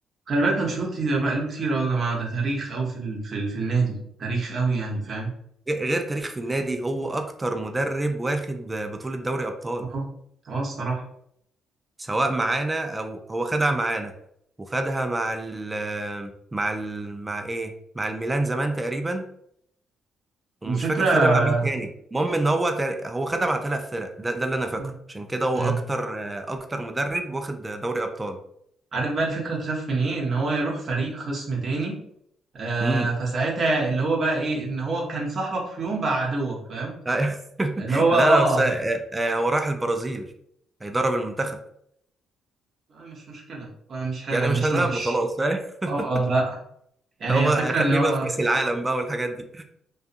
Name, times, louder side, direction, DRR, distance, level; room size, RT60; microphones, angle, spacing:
voice 1, 0.3-5.3 9.9-10.0 10.4-11.0 20.6-21.7 24.8-24.9 25.5-25.8 28.9-32.0 32.5-36.9 37.8-38.7 42.9-45.2 45.9-46.6 47.2-48.3, right 3 dB, 50° right, -2 dB, 0.8 m, -25 dB
voice 2, 5.7-9.9 12.0-14.1 14.6-19.2 20.6-28.4 32.8-33.1 37.1-40.3 40.8-41.6 44.3-46.1 47.3-49.6, right 2 dB, 20° right, 6 dB, 0.4 m, -26 dB
2.6 x 2.3 x 2.5 m, 0.71 s
cardioid pair, 90°, 0 cm